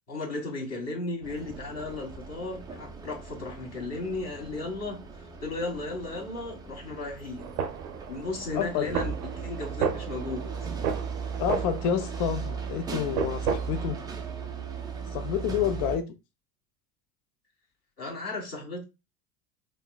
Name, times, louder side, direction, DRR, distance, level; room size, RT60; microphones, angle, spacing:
voice 1, 0.1-7.5 8.1-10.5 18.0-18.8, left 2 dB, 35° left, 1.6 m, -35 dB
sound 1, 1.2-16.0, right 6 dB, 10° right, 0.3 m, -38 dB
sound 2, 7.4-13.9, right 7 dB, 75° right, 0.6 m, -34 dB
voice 2, 8.5-8.9 11.4-14.0 15.1-16.0, left 8 dB, 50° left, 0.5 m, -29 dB
3.5 x 2.5 x 2.3 m
hypercardioid pair, 75°, 45 cm